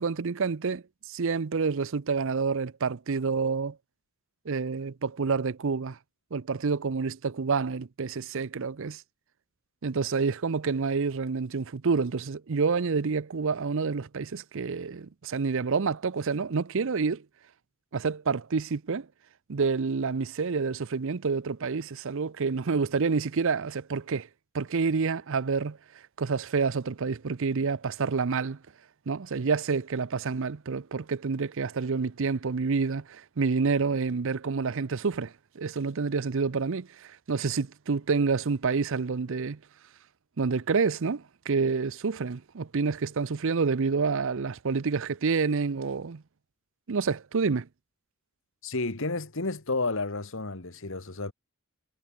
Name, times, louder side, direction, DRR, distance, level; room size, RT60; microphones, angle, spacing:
voice 1, 0.0-3.8 4.5-6.0 6.3-9.0 9.8-17.2 17.9-19.1 19.5-24.3 24.5-25.8 26.2-28.6 29.1-39.6 40.4-46.2 46.9-47.7, right 5 dB, 60° right, 0.6 m, -28 dB
voice 2, 48.6-51.3, left 3 dB, 60° left, 1.9 m, -31 dB
head